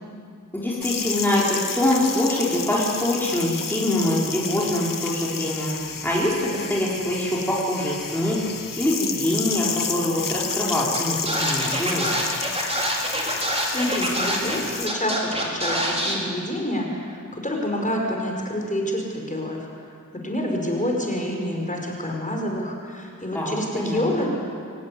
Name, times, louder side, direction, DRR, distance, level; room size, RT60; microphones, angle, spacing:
voice 1, 0.5-5.8 6.0-12.2 23.3-24.3, left 1 dB, 5° left, -6 dB, 4.3 m, -24 dB
sound 1, 0.8-14.9, left 6 dB, 80° left, 1.1 m, -31 dB
Scratching (performance technique), 10.9-11.0 11.3-14.6 14.9-16.1, right 1 dB, 20° right, 4.6 m, -25 dB
voice 2, 13.6-19.6 20.1-24.3, left 1 dB, 25° left, 0 dB, 5.2 m, -27 dB
25.0 x 16.0 x 9.8 m, 2.2 s
wide cardioid pair, 95°, 32 cm